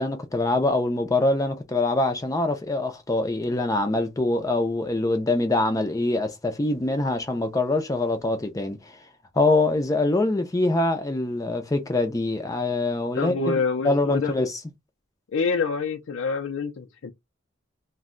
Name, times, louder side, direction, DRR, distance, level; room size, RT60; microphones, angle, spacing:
voice 1, 0.0-9.0 9.3-13.3 13.8-14.5, left 2 dB, 15° left, 0.4 m, -24 dB
voice 2, 13.1-14.3 15.3-17.1, left 4 dB, 80° left, 0.5 m, -26 dB
2.6 x 2.1 x 3.7 m
head